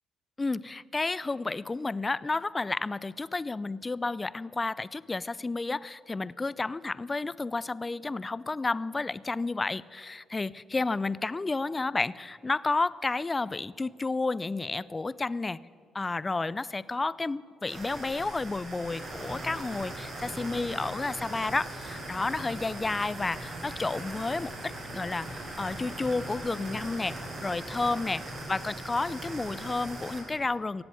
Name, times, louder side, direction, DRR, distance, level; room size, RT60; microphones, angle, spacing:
voice 1, 0.4-15.6 15.9-28.2 28.5-30.8, left 3 dB, 25° left, 19 dB, 0.4 m, -31 dB
sound 1, 17.7-30.2, right 1 dB, 55° right, 5.2 m, -40 dB
sound 2, 23.3-23.4 23.9-24.0 24.5-24.6 25.6-25.7 26.1-26.8 27.2-27.3, left 9 dB, 85° left, 1.1 m, -51 dB
17.0 x 7.8 x 9.2 m, 2.2 s
cardioid pair, 90°, 0 cm